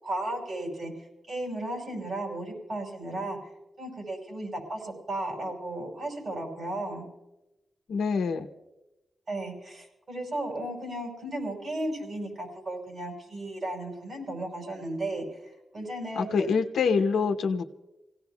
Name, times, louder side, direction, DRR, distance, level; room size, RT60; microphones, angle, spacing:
voice 1, 0.0-3.4 3.8-7.1 9.3-16.5, right 1 dB, 55° right, 0 dB, 5.4 m, -35 dB
voice 2, 7.9-8.4 16.1-17.6, left 5 dB, 85° left, 5 dB, 0.8 m, -25 dB
29.0 x 17.0 x 2.3 m, 1.0 s
cardioid pair, 60°, 0 cm